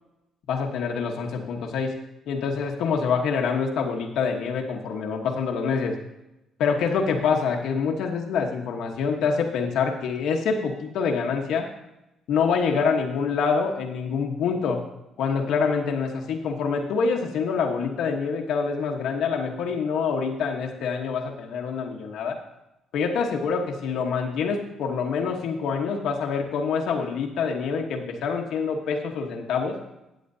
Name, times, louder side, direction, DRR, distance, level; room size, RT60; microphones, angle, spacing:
voice 1, 0.5-2.0 2.3-6.0 6.6-11.7 12.3-14.8 15.2-22.4 22.9-29.8, left 5 dB, 75° left, 1 dB, 1.1 m, -26 dB
14.0 x 8.5 x 2.7 m, 0.92 s
cardioid pair, 115°, 0 cm